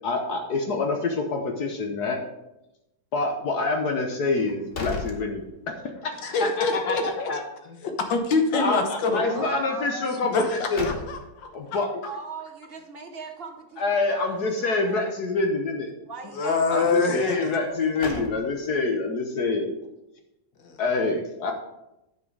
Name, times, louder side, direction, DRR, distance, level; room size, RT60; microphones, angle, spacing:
voice 1, 0.0-2.2 3.1-5.4 6.0-7.0 7.3-7.4 8.5-10.9 11.5-11.9 13.8-15.9 16.7-19.8 20.8-21.5, left 3 dB, 60° left, 3 dB, 1.4 m, -26 dB
sound 1, 4.3-6.0 6.4-6.5 10.3-11.6 17.6-18.9, left 3 dB, 40° left, 1.0 m, -37 dB
voice 2, 6.2-7.3 7.8-9.5 10.1-12.1 16.3-17.5 20.6-20.8, left 4 dB, 80° left, 5 dB, 1.7 m, -26 dB
voice 3, 9.1-10.5 10.8-11.0 12.0-15.3 16.1-17.4 17.8-18.2, right 4 dB, 40° right, 4 dB, 1.0 m, -40 dB
9.3 x 6.0 x 4.7 m, 0.91 s
omnidirectional pair, 2.0 m